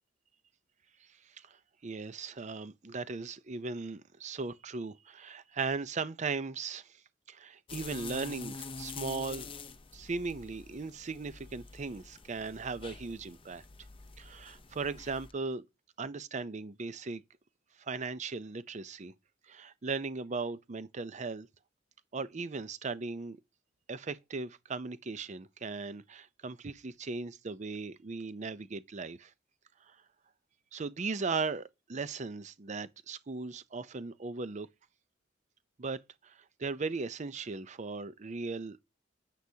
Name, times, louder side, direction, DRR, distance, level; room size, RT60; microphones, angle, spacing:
voice 1, 1.8-7.0 7.3-9.5 9.9-13.6 14.2-15.6 16.0-17.2 17.8-19.1 19.5-21.5 22.1-23.4 23.9-29.3 29.9-30.0 30.7-34.7 35.8-38.8, right 4 dB, 40° right, 0.6 m, -38 dB
sound 1, 7.7-15.3, left 4 dB, 30° left, 0.6 m, -46 dB
9.7 x 8.4 x 2.8 m
head